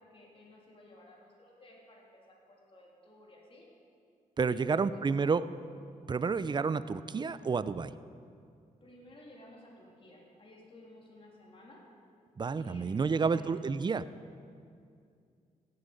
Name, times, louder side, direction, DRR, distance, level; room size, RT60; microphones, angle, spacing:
voice 1, 0.0-3.6 4.5-5.2 8.8-11.8 12.5-13.5, left 1 dB, 40° left, -4 dB, 3.3 m, -53 dB
voice 2, 4.4-5.4 6.1-7.9 12.4-14.1, right 5 dB, 30° right, 15 dB, 0.5 m, -30 dB
16.5 x 7.8 x 5.2 m, 2.4 s
cardioid pair, 65°, 15 cm